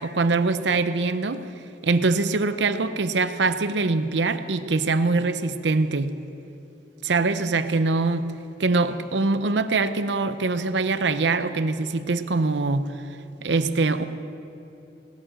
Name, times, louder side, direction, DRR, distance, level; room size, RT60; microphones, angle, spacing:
voice 1, 0.0-1.4 1.8-6.1 7.0-8.3 8.6-12.9 13.4-14.0, right 3 dB, 85° right, 11 dB, 0.7 m, -23 dB
18.0 x 11.0 x 6.3 m, 3.0 s
head